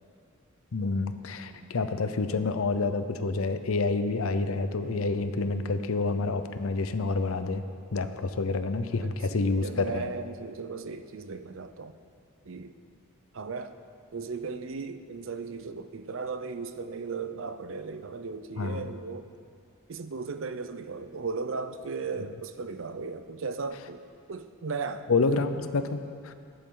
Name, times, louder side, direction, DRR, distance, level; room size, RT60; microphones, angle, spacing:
voice 1, 0.7-7.6 7.9-10.1 18.6-18.8 25.1-26.3, left 3 dB, 80° left, 10 dB, 0.6 m, -28 dB
voice 2, 9.0-12.0 12.4-12.8 13.3-13.8 14.1-19.3 19.9-24.0 24.3-25.1, right 4 dB, 65° right, 10 dB, 0.6 m, -36 dB
14.0 x 10.0 x 3.8 m, 2.2 s
head